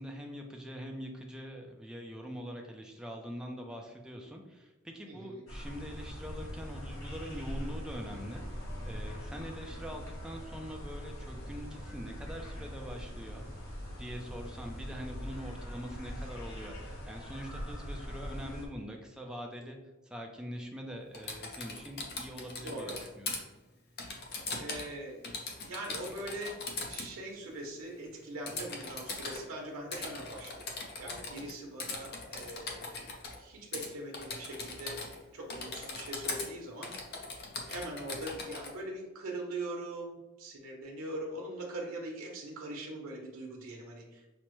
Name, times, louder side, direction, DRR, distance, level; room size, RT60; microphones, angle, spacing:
voice 1, 0.0-13.5 14.0-19.8 20.0-23.4, equal, 5° right, 1 dB, 0.4 m, -43 dB
voice 2, 5.0-5.4 22.6-23.0 24.5-25.2 25.5-26.6 26.9-30.7 31.0-33.1 33.4-35.0 35.3-37.2 37.7-44.2, right 1 dB, 85° right, 0 dB, 0.8 m, -42 dB
sound 1, 5.5-18.7, equal, 90° left, 1.1 m, -42 dB
Typing, 21.1-23.4 24.0-24.9 25.2-27.1 28.5-29.4 29.9-31.5 31.8-33.4 33.7-33.9 34.1-35.2 35.5-36.5 36.8-38.7, left 3 dB, 50° left, 0.6 m, -40 dB
5.7 x 2.1 x 3.0 m, 1.1 s
head